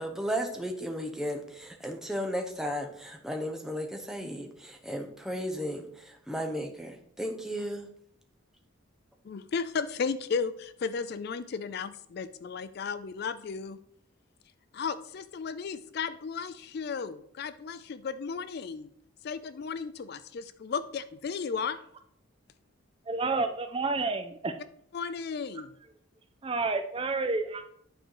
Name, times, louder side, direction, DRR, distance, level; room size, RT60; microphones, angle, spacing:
voice 1, 0.0-7.9, equal, ahead, 3 dB, 0.8 m, -34 dB
voice 2, 9.2-13.8 14.7-18.9 19.2-21.8 24.9-25.7, left 5 dB, 50° left, 14 dB, 0.3 m, -34 dB
voice 3, 23.0-24.6 25.5-25.6 26.4-27.6, right 3 dB, 25° right, 8 dB, 0.4 m, -30 dB
9.1 x 4.4 x 4.6 m, 0.69 s
head